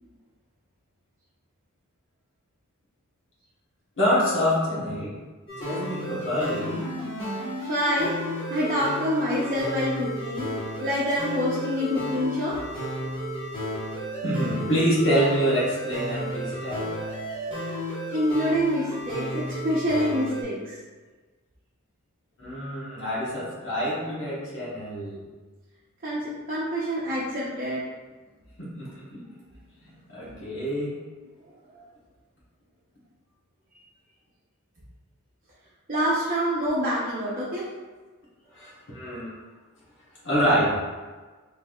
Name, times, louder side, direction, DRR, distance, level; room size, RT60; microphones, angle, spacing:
voice 1, 4.0-5.1 5.6-6.9 14.2-16.9 22.4-25.2 28.8-29.2 30.1-31.0 38.5-39.3 40.2-40.7, equal, 65° left, -8 dB, 1.3 m, -26 dB
sound 1, 5.5-20.4, equal, 25° left, 1.4 m, -33 dB
voice 2, 7.7-8.1 8.5-10.5 10.8-12.6 18.1-20.8 26.0-27.8 31.7-31.8 35.9-37.6, equal, 40° right, -8 dB, 0.8 m, -26 dB
4.5 x 3.4 x 2.3 m, 1.3 s
head